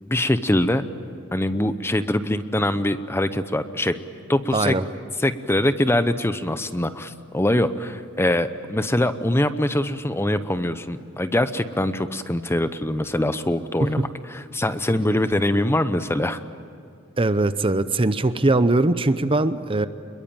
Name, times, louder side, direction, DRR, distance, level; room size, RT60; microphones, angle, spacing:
voice 1, 0.0-0.8 1.3-4.0 4.3-4.8 5.2-16.4, left 1 dB, 10° left, 11 dB, 0.8 m, -23 dB
voice 2, 4.5-4.8 17.2-19.9, right 2 dB, 25° right, 12 dB, 0.7 m, -21 dB
27.5 x 22.0 x 9.0 m, 2.4 s
head